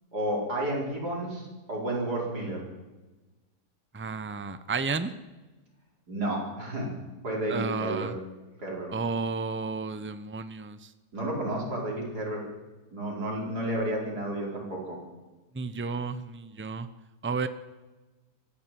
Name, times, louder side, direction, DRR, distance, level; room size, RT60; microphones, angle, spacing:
voice 1, 0.1-2.7 6.1-7.0 7.2-8.1 8.6-8.9 11.1-12.5 12.9-15.0, right 1 dB, 65° right, -2 dB, 5.5 m, -31 dB
voice 2, 3.9-5.1 7.5-8.2 8.9-10.9 15.5-16.9 17.2-17.5, right 4 dB, 20° right, 12 dB, 0.3 m, -32 dB
23.5 x 14.5 x 7.7 m, 1.2 s
omnidirectional pair, 1.9 m